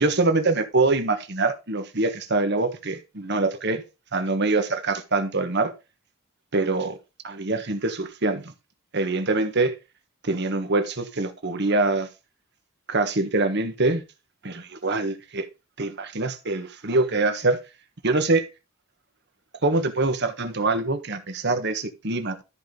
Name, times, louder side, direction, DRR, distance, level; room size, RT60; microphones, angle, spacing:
voice 1, 0.0-3.8 4.1-5.7 6.5-7.0 7.2-8.5 8.9-9.7 10.2-12.1 12.9-14.0 14.4-15.5 15.8-17.6 18.0-18.5 19.6-22.4, right 3 dB, 50° right, 1.4 m, -24 dB
13.5 x 5.2 x 3.8 m
head